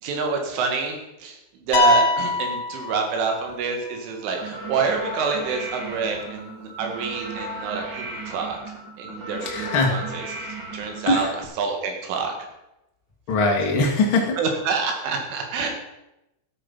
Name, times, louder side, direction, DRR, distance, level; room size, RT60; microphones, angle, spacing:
voice 1, 0.0-10.2 10.7-12.3 14.4-15.7, right 5 dB, 85° right, 3 dB, 4.5 m, -27 dB
sound 1, 1.7-3.6, left 3 dB, 65° left, 3.0 m, -22 dB
sound 2, 4.3-11.4, right 3 dB, 35° right, 2.3 m, -35 dB
voice 2, 9.4-9.9 11.1-11.3 13.3-14.4 15.6-15.7, left 3 dB, 45° left, 0 dB, 1.8 m, -21 dB
14.0 x 8.6 x 5.5 m, 0.90 s
omnidirectional pair, 5.4 m